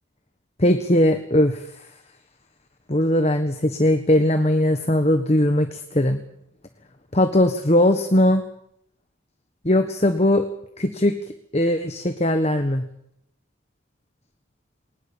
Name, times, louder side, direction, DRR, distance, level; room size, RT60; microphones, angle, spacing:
voice 1, 0.6-1.9 2.9-6.2 7.1-8.4 9.6-10.4 10.8-11.2 11.5-12.8, left 1 dB, 30° left, 7 dB, 1.3 m, -19 dB
21.0 x 19.5 x 7.3 m, 0.75 s
head